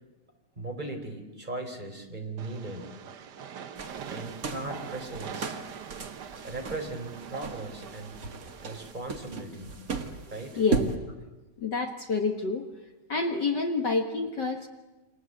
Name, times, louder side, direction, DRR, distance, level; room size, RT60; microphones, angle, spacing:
voice 1, 0.6-2.8 4.1-5.6 6.4-8.2 8.6-9.7 10.3-10.6, right 2 dB, 15° right, 4 dB, 4.0 m, -38 dB
Train, 2.4-8.9, right 8 dB, 90° right, 0.9 m, -43 dB
sound 1, 3.8-11.0, right 4 dB, 35° right, 1.9 m, -36 dB
voice 2, 10.6-10.9 11.6-12.6 13.1-14.7, left 4 dB, 45° left, 5 dB, 1.7 m, -28 dB
28.5 x 25.5 x 8.0 m, 1.1 s
omnidirectional pair, 3.4 m